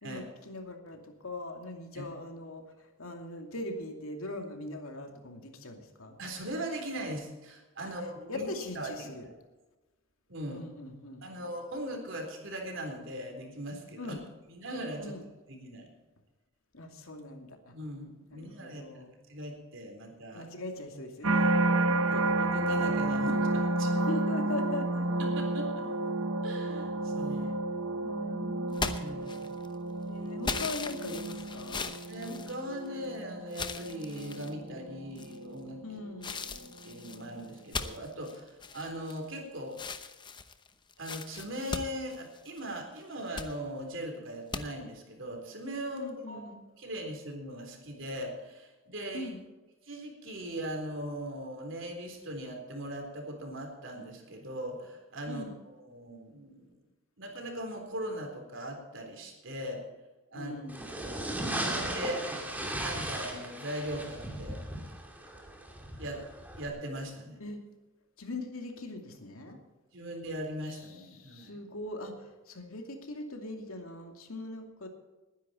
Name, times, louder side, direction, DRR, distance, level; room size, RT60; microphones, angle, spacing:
voice 1, 0.0-6.2 7.8-7.9 8.3-9.3 10.5-11.3 14.0-14.2 15.0-15.2 16.7-17.8 18.3-19.1 20.3-22.1 23.9-25.1 27.3-27.5 28.0-29.0 30.0-31.9 35.8-36.3 46.0-46.6 49.1-49.4 55.3-55.5 60.3-60.8 67.4-67.6 68.2-69.6 70.7-74.9, left 2 dB, 80° left, 3 dB, 2.5 m, -41 dB
voice 2, 6.2-8.5 8.8-9.3 10.3-10.6 11.2-14.2 14.5-15.1 15.5-15.9 17.7-20.5 22.1-23.9 25.2-25.9 26.4-27.6 29.0-29.5 32.1-35.8 36.4-39.8 41.0-46.4 46.8-49.3 49.8-55.4 55.8-56.8 57.2-59.9 60.3-60.5 61.1-62.3 62.8-64.6 66.0-66.2 66.6-67.4 69.9-71.6, right 1 dB, 60° right, 3 dB, 3.8 m, -39 dB
sound 1, 21.2-36.4 37.0-37.4, right 2 dB, 75° right, 1.2 m, -31 dB
sound 2, 28.7-29.7 30.4-33.1 33.5-34.5 35.1-35.6 36.2-39.4 39.7-42.7 43.1-43.5 44.5-44.6, left 4 dB, 20° left, 0.8 m, -38 dB
sound 3, 60.7-66.7, right 1 dB, 10° right, 2.2 m, -37 dB
20.5 x 10.5 x 4.4 m, 1.1 s
head